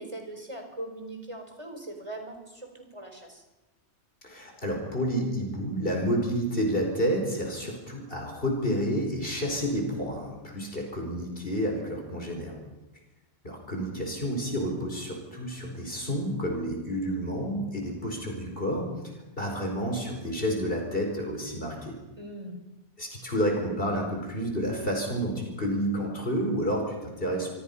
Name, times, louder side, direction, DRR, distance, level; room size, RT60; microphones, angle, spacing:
voice 1, 0.0-3.4 22.2-22.6, right 1 dB, 25° right, 3 dB, 4.5 m, -40 dB
voice 2, 4.2-12.6 13.4-18.9 19.4-22.0 23.0-27.5, equal, 50° left, 1 dB, 5.1 m, -30 dB
26.5 x 24.5 x 5.6 m, 1.0 s
omnidirectional pair, 1.2 m